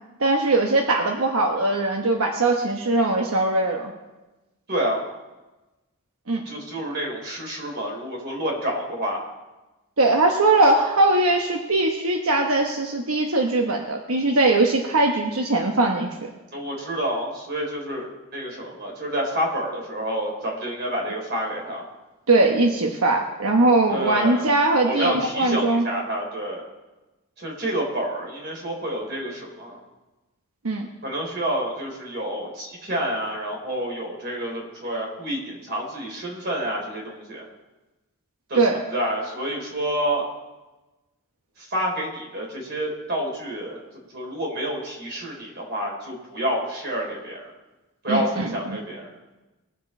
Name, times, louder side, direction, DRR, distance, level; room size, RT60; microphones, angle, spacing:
voice 1, 0.2-3.9 6.3-6.4 10.0-16.3 22.3-25.8 30.6-30.9 38.5-38.8 48.1-48.8, right 2 dB, 90° right, 2 dB, 1.1 m, -21 dB
voice 2, 4.7-5.0 6.5-9.2 16.5-21.9 23.9-24.5 24.8-26.6 27.4-29.8 31.0-37.4 38.5-40.3 41.6-43.8 44.1-47.5 48.0-49.1, equal, 50° right, -1 dB, 3.8 m, -28 dB
21.5 x 7.4 x 4.3 m, 1.1 s
head